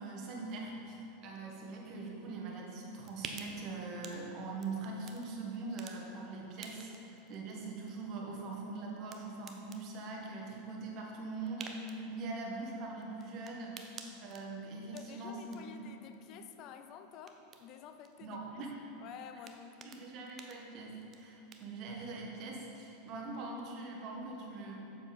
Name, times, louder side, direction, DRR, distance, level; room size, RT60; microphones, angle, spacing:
voice 1, 0.0-15.8 18.2-18.7 19.8-24.9, right 3 dB, 50° right, -1 dB, 1.6 m, -42 dB
sound 1, 2.5-21.8, right 5 dB, 35° right, 0.7 m, -54 dB
voice 2, 14.9-18.6 19.0-19.9, left 8 dB, 50° left, 8 dB, 0.5 m, -50 dB
7.2 x 7.0 x 4.2 m, 2.9 s
hypercardioid pair, 95°, 0 cm